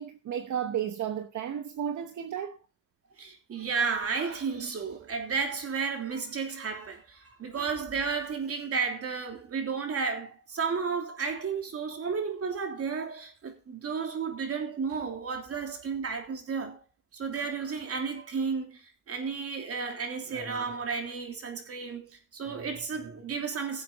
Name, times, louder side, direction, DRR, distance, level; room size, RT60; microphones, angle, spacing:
voice 1, 0.0-2.6, right 9 dB, 70° right, 1.0 m, -33 dB
voice 2, 3.2-16.8 17.1-23.8, right 5 dB, 50° right, 3.2 m, -33 dB
16.0 x 7.7 x 4.0 m
cardioid pair, 130°, 30 cm